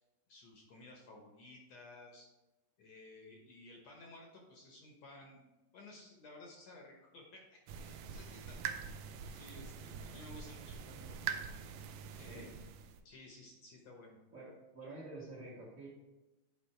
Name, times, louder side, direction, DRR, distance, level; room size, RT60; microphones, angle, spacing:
voice 1, 0.3-2.3 2.8-8.8 9.3-11.4 12.2-12.6 13.1-14.2, left 2 dB, 65° left, 0 dB, 1.9 m, -55 dB
sound 1, 7.7-13.0, right 7 dB, 85° right, 1.6 m, -44 dB
voice 2, 14.3-15.9, right 2 dB, 30° right, -5 dB, 1.6 m, -49 dB
8.5 x 5.0 x 4.4 m, 1.0 s
omnidirectional pair, 3.9 m